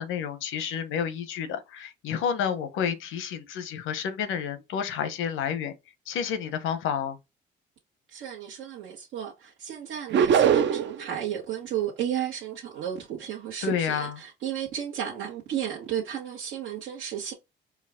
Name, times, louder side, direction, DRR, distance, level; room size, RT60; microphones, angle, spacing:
voice 1, 0.0-5.7 6.1-7.2 13.6-14.2, left 8 dB, 90° left, 0.9 m, -30 dB
voice 2, 8.1-17.3, right 10 dB, 85° right, 1.2 m, -33 dB
sound 1, 10.1-11.0, right 8 dB, 65° right, 0.6 m, -21 dB
4.6 x 2.3 x 3.6 m
cardioid pair, 90°, 20 cm